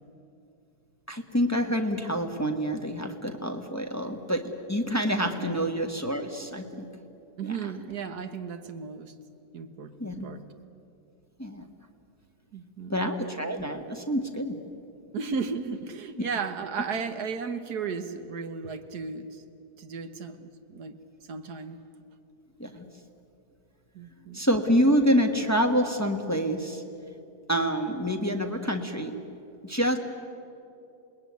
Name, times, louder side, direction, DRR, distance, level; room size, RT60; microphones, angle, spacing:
voice 1, 1.1-6.9 10.0-10.2 11.4-11.7 12.9-14.6 22.6-22.9 24.3-26.8 27.5-29.1 29.6-30.0, equal, 10° left, 4 dB, 1.4 m, -27 dB
voice 2, 7.4-9.2 9.5-10.4 12.5-12.9 15.1-19.4 19.8-21.0 21.3-21.8 23.9-24.4, right 5 dB, 70° right, 8 dB, 1.8 m, -35 dB
27.5 x 20.5 x 9.5 m, 2.7 s
omnidirectional pair, 1.8 m